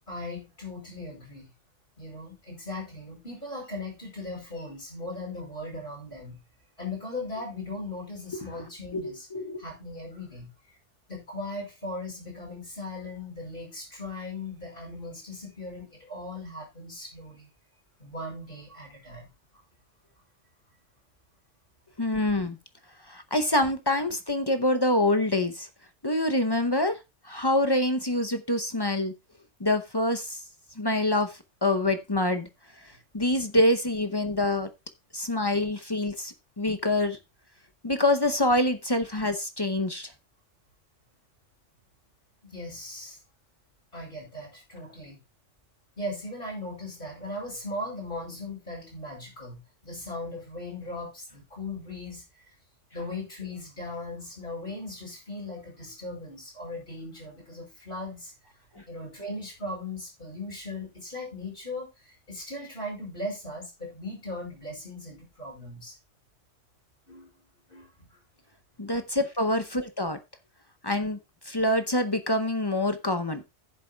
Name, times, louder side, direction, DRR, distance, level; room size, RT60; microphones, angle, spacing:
voice 1, 0.1-1.5 2.0-6.4 6.8-9.3 9.6-10.5 11.1-17.5 18.0-19.3 42.4-43.2 43.9-45.2 46.0-52.5 52.9-58.3 58.8-66.0 67.1-67.3 67.7-68.2, left 2 dB, 45° left, -2 dB, 5.4 m, -38 dB
voice 2, 8.9-9.6 22.0-22.6 23.1-25.7 26.0-27.0 27.2-29.1 29.6-30.4 30.8-32.5 33.1-34.7 35.1-37.2 37.8-40.1 68.8-70.2 70.8-71.2 71.5-73.4, left 1 dB, 25° left, 8 dB, 0.6 m, -26 dB
14.5 x 7.5 x 2.3 m, 0.23 s
omnidirectional pair, 1.3 m